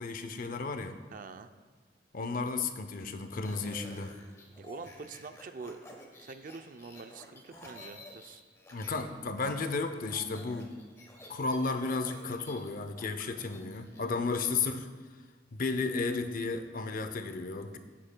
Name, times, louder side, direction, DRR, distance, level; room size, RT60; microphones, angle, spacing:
voice 1, 0.0-1.0 2.1-4.2 8.7-10.8 11.3-14.9 15.5-17.8, left 4 dB, 50° left, 9 dB, 0.6 m, -33 dB
voice 2, 1.1-1.5 4.6-5.8 6.2-8.4, right 4 dB, 50° right, 9 dB, 0.4 m, -45 dB
sound 1, 3.2-9.0 9.3-14.0, left 1 dB, 15° left, 1.1 m, -52 dB
14.5 x 7.4 x 2.2 m, 1.5 s
head